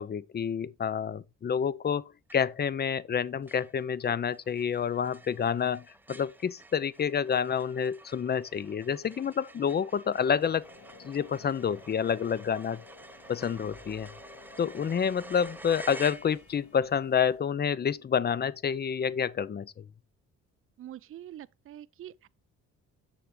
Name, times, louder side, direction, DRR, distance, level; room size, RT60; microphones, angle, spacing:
voice 1, 0.0-2.0 2.3-10.6 11.0-12.8 13.3-14.1 14.6-19.8, left 7 dB, 35° left, 0.6 m, -28 dB
sound 1, 2.3-2.7 3.1-3.2 3.5-16.7, right 2 dB, 5° right, 0.7 m, -50 dB
sound 2, 10.1-17.4, left 4 dB, 90° left, 3.9 m, -54 dB
voice 2, 20.8-22.3, right 12 dB, 45° right, 0.5 m, -45 dB
7.2 x 6.7 x 3.6 m
cardioid pair, 90°, 30 cm